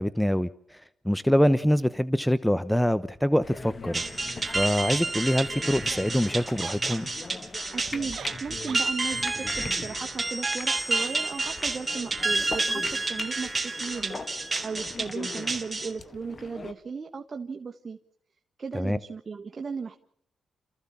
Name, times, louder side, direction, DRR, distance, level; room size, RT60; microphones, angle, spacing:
voice 1, 0.0-4.0 4.5-7.1 18.7-19.0, equal, 5° left, 16 dB, 0.9 m, -25 dB
sound 1, 3.4-16.7, left 3 dB, 40° left, 1.8 m, -41 dB
sound 2, 3.9-15.9, right 3 dB, 25° right, 3.6 m, -30 dB
sound 3, 6.6-7.1 7.8-8.9 9.2-9.3 10.9-11.2 11.4-11.6, right 7 dB, 65° right, 1.0 m, -40 dB
voice 2, 7.7-14.2 14.6-18.0 18.6-20.0, right 5 dB, 45° right, 5 dB, 1.5 m, -36 dB
28.5 x 15.0 x 7.3 m, 0.77 s
cardioid pair, 70°, 0 cm